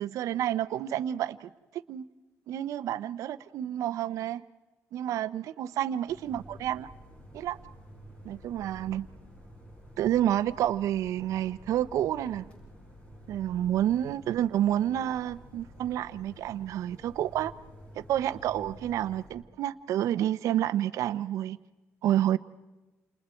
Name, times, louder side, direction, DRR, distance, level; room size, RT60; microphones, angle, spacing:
voice 1, 0.0-1.5 1.9-2.1 2.5-4.4 4.9-6.9 7.3-7.6 8.2-9.1 10.0-12.5 13.3-17.5 17.9-21.6 22.0-22.4, right 11 dB, 75° right, 14 dB, 0.9 m, -29 dB
sound 1, 6.1-19.3, equal, 20° left, 7.1 m, -50 dB
29.5 x 28.5 x 4.5 m, 1.1 s
cardioid pair, 145°, 6 cm